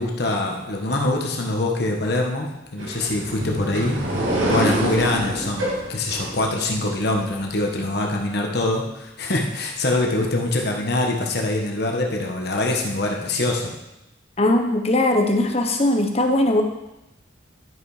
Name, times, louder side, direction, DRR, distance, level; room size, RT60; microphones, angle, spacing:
voice 1, 0.0-4.0 4.5-13.7, left 2 dB, 55° left, 1 dB, 1.3 m, -24 dB
sound 1, 2.8-7.5, right 1 dB, 80° right, 2.3 m, -26 dB
voice 2, 14.4-16.6, left 1 dB, 30° left, 4 dB, 0.9 m, -19 dB
11.5 x 5.7 x 4.9 m, 0.92 s
head